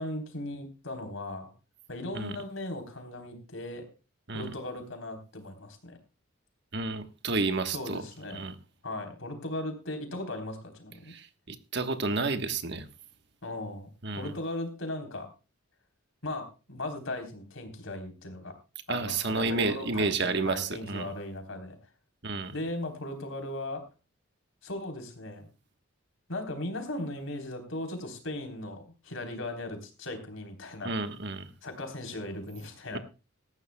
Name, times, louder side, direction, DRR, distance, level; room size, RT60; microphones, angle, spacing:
voice 1, 0.0-1.5 1.9-3.8 4.3-6.0 7.7-8.4 8.8-11.1 13.4-15.3 16.2-18.5 18.9-21.8 22.5-23.8 24.6-25.5 26.3-30.9 31.6-33.0, left 1 dB, 70° left, 5 dB, 3.6 m, -37 dB
voice 2, 6.7-8.0 8.3-8.6 11.1-12.9 14.0-14.3 18.9-21.1 22.2-22.6 30.8-31.5 32.9-33.0, right 3 dB, 50° right, 9 dB, 1.2 m, -31 dB
18.5 x 14.5 x 2.2 m, 0.31 s
head